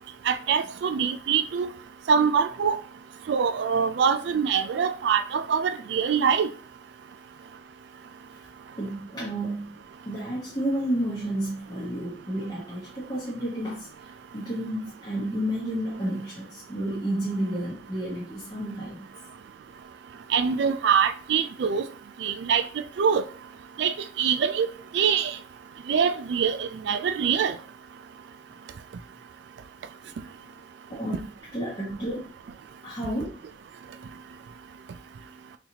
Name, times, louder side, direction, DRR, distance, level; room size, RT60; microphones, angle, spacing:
voice 1, 0.3-1.7 2.1-2.8 3.3-6.5 20.3-21.8 22.2-22.7 23.0-23.2 23.8-24.7 24.9-25.4 25.9-27.5, right 6 dB, 65° right, 0.3 m, -24 dB
voice 2, 8.8-9.8 10.1-13.9 14.3-19.1 30.9-31.3 31.5-32.3 32.8-33.3, right 1 dB, 20° left, 1.0 m, -31 dB
3.9 x 2.9 x 2.9 m
head